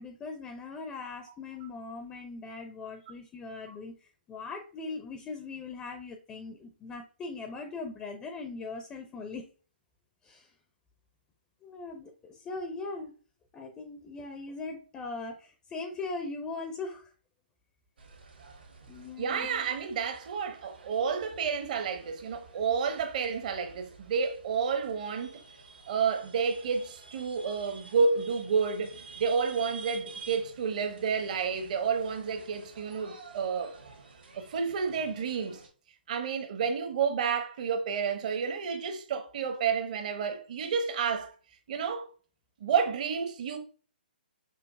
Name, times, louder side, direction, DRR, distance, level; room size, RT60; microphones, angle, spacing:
voice 1, 0.0-9.4 10.2-10.5 11.6-13.1 13.5-17.1 18.9-19.5, left 3 dB, 15° left, 0.5 m, -40 dB
sound 1, 18.0-35.7, right 4 dB, 70° right, 1.4 m, -50 dB
voice 2, 19.2-25.4 25.9-33.7 34.3-35.6 36.1-41.3 41.7-42.1 42.6-43.6, right 6 dB, 45° right, 0.8 m, -30 dB
5.6 x 2.7 x 2.6 m
figure-of-eight pair, 135°, 6 cm